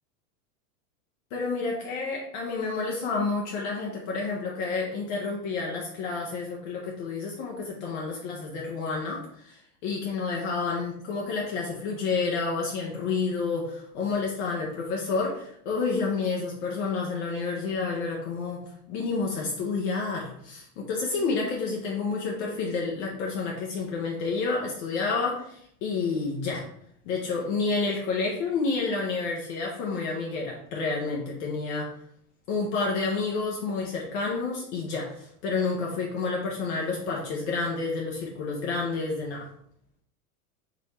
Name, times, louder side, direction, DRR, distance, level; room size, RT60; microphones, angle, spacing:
voice 1, 1.3-26.6 27.1-31.9 32.5-39.5, left 4 dB, 50° left, -1 dB, 1.0 m, -29 dB
4.2 x 2.5 x 4.1 m, 0.68 s
hypercardioid pair, 120°, 46 cm